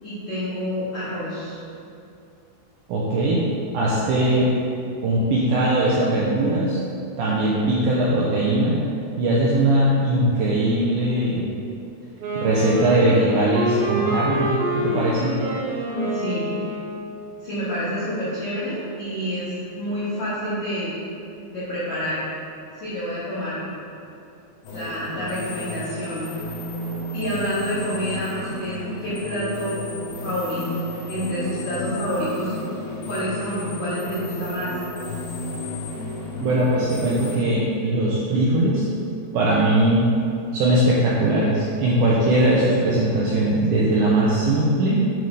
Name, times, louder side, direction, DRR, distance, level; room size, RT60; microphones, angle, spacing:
voice 1, 0.0-1.6 15.9-16.4 17.4-20.9 21.5-22.2 22.8-23.6 24.7-26.3 27.1-29.8 30.2-32.5 33.1-34.7, equal, 55° left, -13 dB, 1.7 m, -28 dB
voice 2, 2.9-3.5 3.7-4.5 5.0-6.8 7.2-8.8 9.2-11.5 12.4-15.3 36.4-38.9 39.3-40.1 40.5-45.0, right 1 dB, 90° right, -6 dB, 2.1 m, -20 dB
Wind instrument woodwind instrument, 12.2-17.2, right 1 dB, 70° right, 2.6 m, -26 dB
sound 1, 24.6-37.4, left 1 dB, 85° left, 3.4 m, -32 dB
9.5 x 3.3 x 4.0 m, 2.6 s
omnidirectional pair, 5.0 m